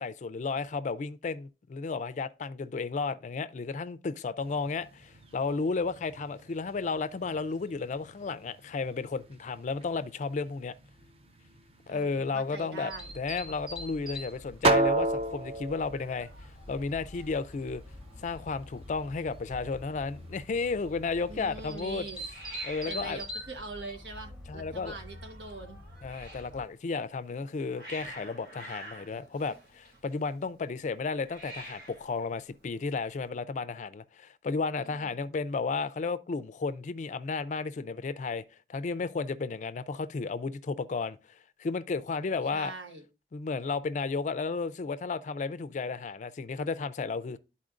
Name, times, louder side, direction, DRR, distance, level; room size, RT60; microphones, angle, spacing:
voice 1, 0.0-10.7 11.9-16.3 16.7-17.8 18.2-22.0 22.6-23.2 24.5-25.0 26.0-38.4 38.7-41.2 41.6-42.7 43.3-47.4, left 4 dB, 45° left, 0.4 m, -33 dB
sound 1, 4.4-21.7, right 2 dB, 35° right, 0.5 m, -36 dB
voice 2, 11.9-13.1 21.3-22.2 22.9-25.8 34.8-35.2 42.5-43.0, right 3 dB, 85° right, 1.2 m, -43 dB
sound 2, 12.9-26.7, equal, 5° right, 0.8 m, -45 dB
Hiss, 15.9-33.3, right 1 dB, 65° right, 2.9 m, -51 dB
11.5 x 4.2 x 2.5 m
head